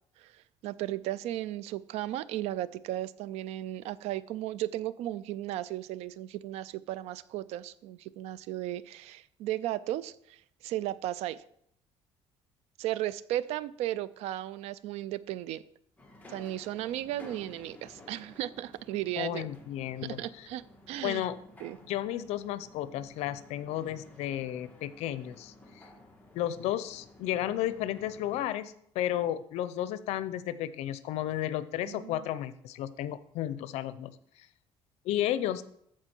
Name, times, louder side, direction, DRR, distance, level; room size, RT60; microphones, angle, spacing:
voice 1, 0.2-11.4 12.8-15.6 16.3-19.5 20.0-21.3 21.6-21.8 31.9-32.3, right 14 dB, 85° right, 18 dB, 0.4 m, -35 dB
sound 1, 16.0-28.5, left 2 dB, 15° left, 1.7 m, -54 dB
voice 2, 19.2-20.5 21.0-21.4 21.9-25.9 26.3-34.1 35.0-35.6, left 12 dB, 85° left, 14 dB, 0.6 m, -33 dB
13.5 x 4.7 x 4.5 m, 0.70 s
cardioid pair, 120°, 11 cm